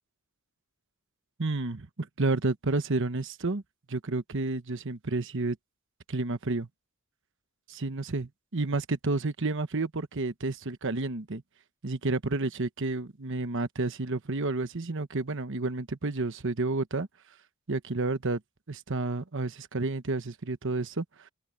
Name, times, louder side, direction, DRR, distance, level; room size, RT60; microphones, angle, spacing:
voice 1, 1.4-3.6 3.9-5.6 6.1-6.7 7.7-11.4 11.8-17.1 17.7-18.4 18.7-21.0, right 3 dB, 60° right, 1.1 m, -30 dB
open air
head